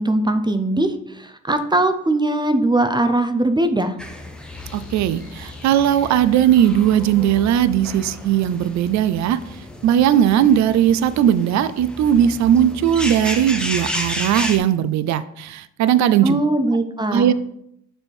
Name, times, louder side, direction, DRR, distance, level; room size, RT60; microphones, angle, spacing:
voice 1, 0.0-3.9 16.2-17.3, right 1 dB, 15° right, 8 dB, 0.5 m, -20 dB
sound 1, 4.0-14.6, left 1 dB, 5° left, 0.8 m, -33 dB
sound 2, 4.5-11.3, left 7 dB, 70° left, 1.0 m, -43 dB
voice 2, 4.7-9.5 9.8-16.4 17.1-17.3, right 10 dB, 65° right, 14 dB, 0.4 m, -18 dB
6.9 x 3.5 x 4.4 m, 0.74 s
cardioid pair, 90°, 30 cm